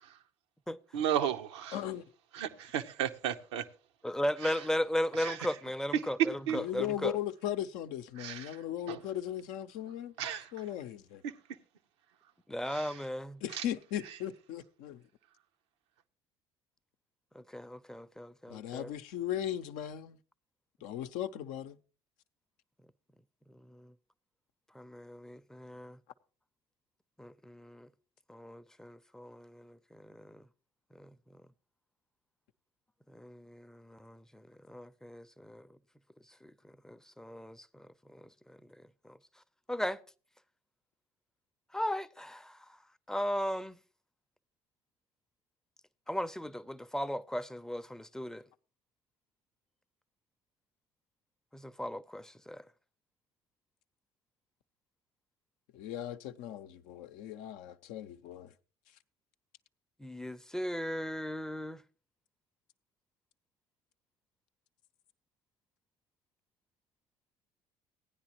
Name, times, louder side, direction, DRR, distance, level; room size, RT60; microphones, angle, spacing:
voice 1, 0.9-1.8 2.3-3.6 4.4-4.6 5.2-5.4 6.5-6.6 8.2-8.6 8.9-9.0 10.2-10.5 11.2-11.3 12.7-12.9 13.5-13.6, right 9 dB, 85° right, 0.7 m, -34 dB
voice 2, 1.7-2.0 6.5-10.1 10.5-11.2 13.4-15.0 18.5-20.2 20.8-21.8 55.7-58.5, left 11 dB, 70° left, 0.6 m, -37 dB
voice 3, 4.0-7.2 12.5-13.4 17.3-18.9 23.7-23.9 24.7-26.0 27.2-27.9 28.3-30.4 30.9-31.1 33.1-35.7 36.4-38.6 39.0-39.2 39.7-40.0 41.7-42.6 43.1-43.8 46.1-48.4 51.5-52.6 60.0-61.8, equal, 5° left, 0.5 m, -37 dB
16.5 x 9.8 x 2.9 m
hypercardioid pair, 60°, 14 cm